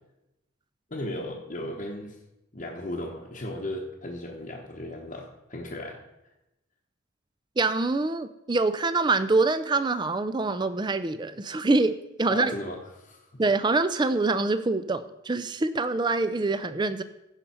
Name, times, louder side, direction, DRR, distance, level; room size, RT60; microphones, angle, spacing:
voice 1, 0.9-2.2 2.5-6.0 12.3-13.4, left 1 dB, 35° left, -3 dB, 0.9 m, -36 dB
voice 2, 7.6-12.5 13.4-17.0, right 3 dB, 20° right, 13 dB, 0.4 m, -25 dB
15.5 x 5.4 x 4.3 m, 0.91 s
head